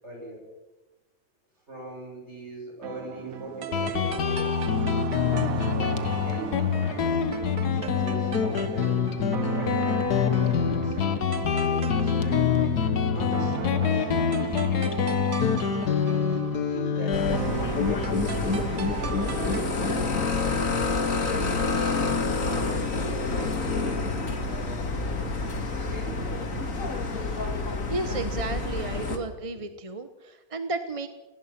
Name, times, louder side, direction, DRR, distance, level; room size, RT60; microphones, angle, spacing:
voice 1, 0.0-0.5 1.7-5.1 5.7-7.3 7.7-9.0 9.4-12.6 13.1-14.1 14.6-15.0 15.9-18.2 18.7-20.2 22.0-26.7 27.2-27.7, right 2 dB, 45° right, -1 dB, 8.2 m, -42 dB
sound 1, 2.8-19.7, right 7 dB, 65° right, 1.5 m, -36 dB
Guitar, 3.7-20.9, left 7 dB, 75° left, 1.8 m, -26 dB
sound 2, 17.1-29.2, left 3 dB, 55° left, 2.6 m, -28 dB
voice 2, 27.9-31.1, right 2 dB, 25° right, 9 dB, 1.0 m, -33 dB
23.5 x 18.5 x 6.0 m, 1.1 s
omnidirectional pair, 1.7 m